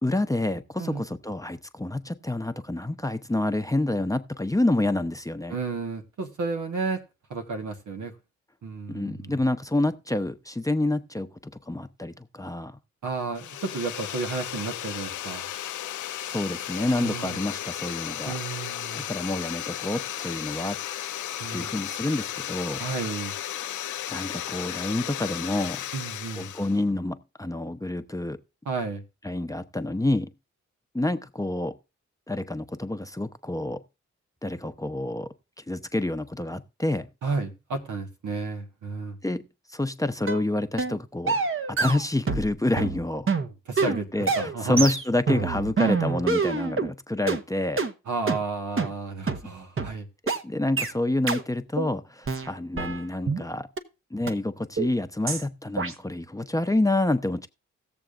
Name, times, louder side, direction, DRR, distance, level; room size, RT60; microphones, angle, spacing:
voice 1, 0.0-5.6 8.9-12.8 16.2-18.3 18.9-20.8 21.5-22.8 24.1-25.8 26.4-28.4 29.2-30.3 30.9-31.8 32.3-33.8 34.4-35.3 35.7-37.1 39.2-41.4 41.7-43.3 44.1-47.8 50.2-53.7 54.1-57.5, left 2 dB, 10° left, 0.8 m, -28 dB
voice 2, 5.5-7.0 7.3-8.1 8.6-9.4 13.0-15.5 17.0-17.4 18.2-19.0 21.4-21.7 22.8-23.3 25.9-26.5 28.6-29.0 37.2-39.2 43.7-44.9 48.1-50.1, right 4 dB, 80° right, 1.5 m, -32 dB
sound 1, 13.3-26.8, left 11 dB, 80° left, 0.5 m, -34 dB
sound 2, 40.3-40.4 40.8-41.0 41.3-42.5 42.8-46.9 47.3-47.4 47.8-47.9 48.3-48.4 48.8-48.9 49.3-49.4 49.8-49.9 50.3-50.4 50.8-50.9 51.3-51.4 51.8-51.9 52.3-53.4 53.8-53.9 54.3-54.4 54.8-54.9 55.3-55.4 55.8-55.9, right 4 dB, 45° right, 1.1 m, -26 dB
18.0 x 7.0 x 2.5 m
cardioid pair, 55°, 30 cm